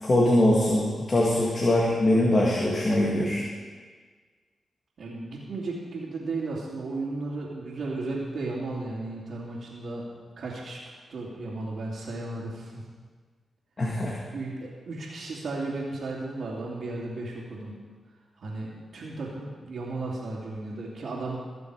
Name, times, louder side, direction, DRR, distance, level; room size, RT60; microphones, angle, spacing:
voice 1, 0.0-3.4 13.8-14.1, left 1 dB, 40° left, -4 dB, 2.3 m, -22 dB
voice 2, 5.0-10.8 11.1-12.8 14.3-17.8 18.4-21.4, right 2 dB, 70° right, -8 dB, 2.6 m, -34 dB
19.5 x 6.9 x 4.9 m, 1.5 s
supercardioid pair, 55°, 0 cm